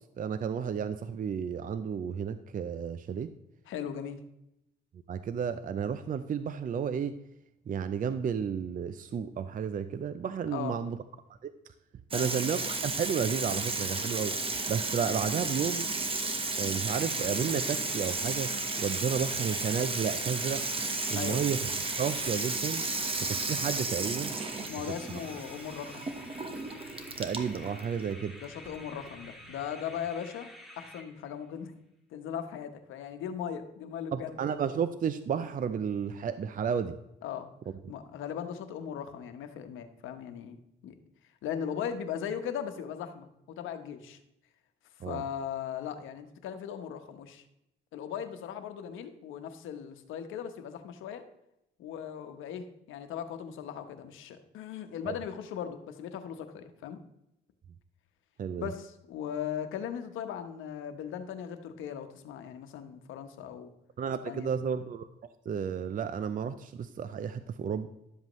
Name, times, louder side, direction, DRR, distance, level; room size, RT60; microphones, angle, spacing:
voice 1, 0.2-3.3 5.1-7.2 7.7-11.0 11.4-11.5 12.1-14.4 14.7-15.9 16.6-20.6 21.1-21.6 22.0-22.9 23.2-24.4 27.2-28.4 34.1-37.0 45.0-45.2 55.0-55.1 58.4-58.7 64.0-65.1 65.5-67.9, right 7 dB, 45° right, 11 dB, 0.5 m, -32 dB
voice 2, 3.7-4.2 10.5-10.8 12.1-12.3 21.1-21.4 24.7-26.0 28.4-30.5 30.8-31.7 32.1-34.3 37.2-37.5 37.9-40.6 40.8-40.9 41.4-43.3 43.6-44.2 45.0-47.4 47.9-51.2 51.8-57.0 58.6-63.7 64.2-64.5, left 8 dB, 85° left, 8 dB, 1.0 m, -38 dB
Water tap faucet / Sink (filling or washing), 12.1-29.6, right 3 dB, 25° right, 1.2 m, -33 dB
sound 1, 16.9-31.5, left 1 dB, ahead, 1.9 m, -50 dB
12.0 x 7.6 x 3.1 m, 0.85 s
cardioid pair, 90°, 20 cm